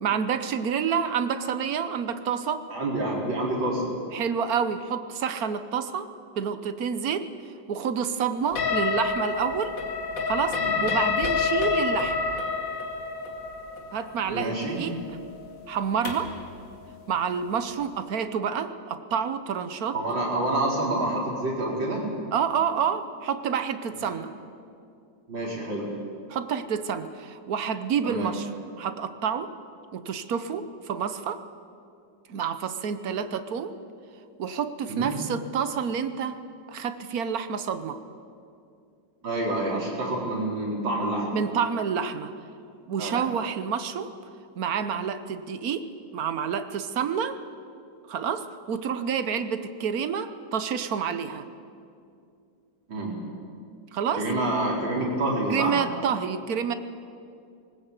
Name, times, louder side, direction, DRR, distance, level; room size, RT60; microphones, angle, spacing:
voice 1, 0.0-2.7 4.1-6.1 6.4-7.3 7.7-9.7 10.3-12.2 13.9-15.0 15.7-16.3 17.1-19.9 22.3-24.3 26.3-28.5 28.8-29.5 29.9-31.4 32.3-33.7 34.4-36.4 36.7-38.0 41.3-42.3 42.9-44.1 44.6-45.9 46.1-47.4 48.1-51.4 53.9-54.3 55.5-56.7, right 7 dB, 55° right, 10 dB, 1.3 m, -28 dB
voice 2, 2.7-3.8 10.5-10.8 14.2-14.8 19.9-22.1 23.9-24.0 25.3-25.9 28.0-28.3 34.9-35.1 39.2-41.3 43.0-43.2 52.9-53.1 54.1-55.8, right 1 dB, 75° right, -3 dB, 5.2 m, -28 dB
sound 1, 8.6-16.4, left 5 dB, 75° left, 2.7 m, -28 dB
19.5 x 19.5 x 8.3 m, 2.5 s
omnidirectional pair, 2.1 m